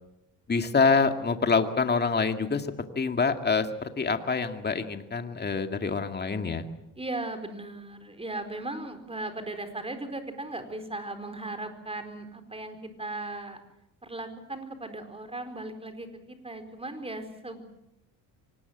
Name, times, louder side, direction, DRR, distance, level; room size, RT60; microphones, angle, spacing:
voice 1, 0.5-2.7 3.0-6.7, left 5 dB, 25° left, 7 dB, 2.2 m, -26 dB
voice 2, 7.0-13.6 14.0-17.6, right 2 dB, 15° right, 8 dB, 4.5 m, -37 dB
24.5 x 20.0 x 8.1 m, 0.87 s
cardioid pair, 95°, 39 cm